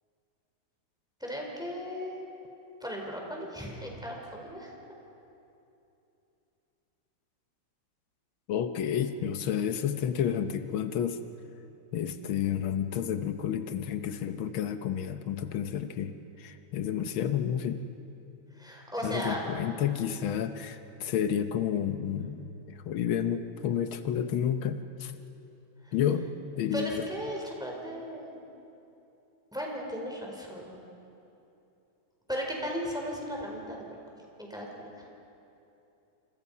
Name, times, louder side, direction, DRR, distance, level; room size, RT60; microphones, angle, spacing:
voice 1, 1.2-2.3 2.8-4.7 18.6-19.4 25.8-25.9 26.7-28.4 29.5-30.8 32.3-33.8 34.4-35.1, equal, ahead, -1 dB, 4.5 m, -36 dB
voice 2, 8.5-11.2 11.9-17.9 19.0-25.1 25.9-27.1, left 9 dB, 85° left, 9 dB, 1.7 m, -30 dB
29.0 x 27.0 x 5.6 m, 2.9 s
omnidirectional pair, 2.2 m